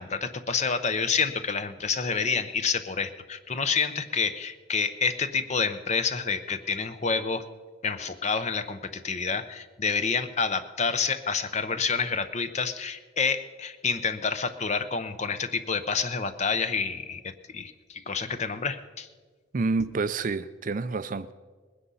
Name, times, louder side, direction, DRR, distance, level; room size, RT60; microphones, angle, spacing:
voice 1, 0.0-7.4 7.8-19.1, left 5 dB, 35° left, 10 dB, 0.7 m, -28 dB
voice 2, 19.5-21.3, right 3 dB, 40° right, 13 dB, 0.4 m, -28 dB
20.0 x 10.0 x 5.5 m, 1.4 s
head